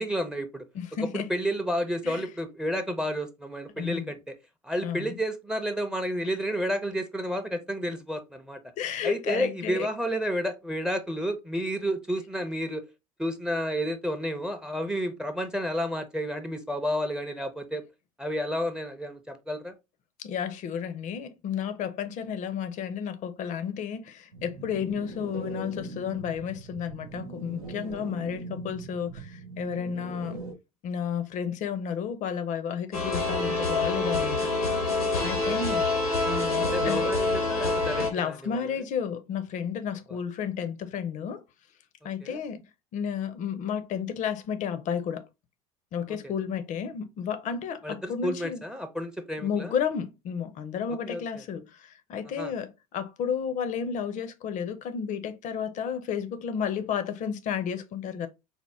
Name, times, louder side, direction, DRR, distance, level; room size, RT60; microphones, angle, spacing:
voice 1, 0.0-0.7 1.1-4.3 4.6-8.6 9.0-12.8 13.2-17.8 18.2-19.7 35.2-35.6 36.7-38.8 42.2-42.4 46.1-46.2 47.8-49.8 51.1-51.2 52.4-52.5, equal, 5° right, 0.6 m, -31 dB
voice 2, 0.7-1.3 2.0-2.3 3.8-4.1 4.8-5.2 8.8-9.9 20.2-30.4 30.8-34.5 34.8-35.8 36.3-37.1 38.1-41.4 42.0-42.6 42.9-45.2 45.9-48.6 49.4-58.3, left 7 dB, 45° left, 0.6 m, -32 dB
sound 1, 24.3-30.5, right 3 dB, 75° right, 0.9 m, -40 dB
sound 2, 32.9-38.1, left 2 dB, 90° left, 1.1 m, -26 dB
4.3 x 2.1 x 3.4 m
figure-of-eight pair, 65°, 18 cm